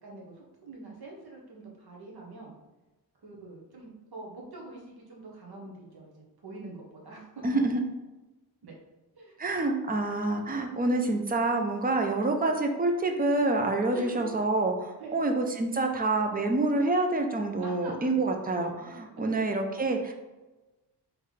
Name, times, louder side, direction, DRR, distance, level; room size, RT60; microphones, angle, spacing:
voice 1, 0.0-2.5 3.2-6.1 6.4-7.6 8.6-8.7 9.1-9.3 13.9-14.4 15.0-15.2 17.6-18.1 19.2-19.3, right 2 dB, 65° right, -2 dB, 1.2 m, -44 dB
voice 2, 7.4-7.8 9.4-20.1, right 2 dB, 20° right, 4 dB, 0.5 m, -27 dB
3.9 x 3.2 x 3.2 m, 1.1 s
wide cardioid pair, 105°, 40 cm